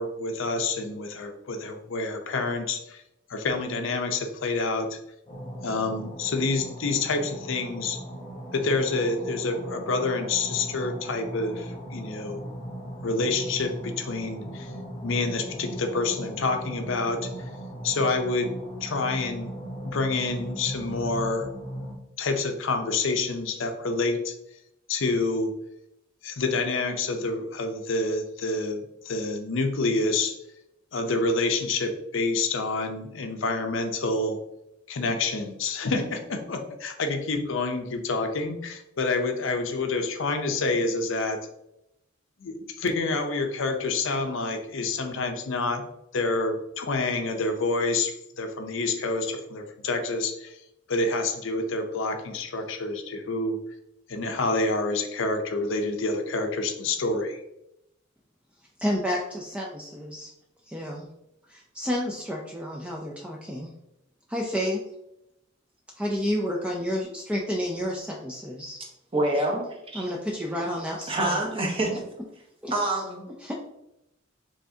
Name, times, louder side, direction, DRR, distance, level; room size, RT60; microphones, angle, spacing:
voice 1, 0.0-3.0 3.3-5.0 5.6-8.0 8.5-12.4 13.0-14.7 15.0-17.5 17.8-18.5 18.8-19.5 19.9-21.5 22.2-24.3 24.9-25.5 26.2-30.4 30.9-34.4 34.9-41.4 42.4-45.9 46.1-50.6 50.9-53.6 54.1-57.4, left 3 dB, 70° left, 5 dB, 0.6 m, -28 dB
sound 1, 5.3-21.9, right 1 dB, 25° left, 1.0 m, -38 dB
voice 2, 58.8-60.3 60.7-61.1 61.5-63.7 64.3-64.8 66.0-68.8 69.9-71.4 72.6-72.7 73.4-73.5, equal, 5° right, -2 dB, 0.4 m, -30 dB
voice 3, 69.1-70.0 71.1-71.9 72.7-73.2, right 1 dB, 30° right, 0 dB, 1.0 m, -26 dB
5.5 x 3.5 x 2.7 m, 0.84 s
head